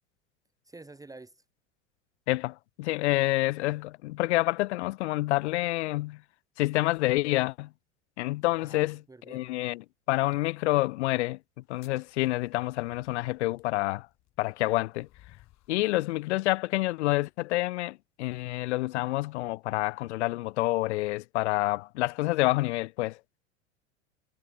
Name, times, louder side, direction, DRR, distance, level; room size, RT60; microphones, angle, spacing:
voice 1, 0.6-1.4 8.6-9.5, right 3 dB, 10° right, 2.0 m, -49 dB
voice 2, 2.3-6.2 6.6-7.7 8.2-9.0 9.3-11.4 11.7-14.1 14.4-15.1 15.7-23.2, left 19 dB, 65° left, 0.6 m, -28 dB
sound 1, 11.6-15.9, left 16 dB, 45° left, 7.1 m, -60 dB
hypercardioid pair, 85°, 37 cm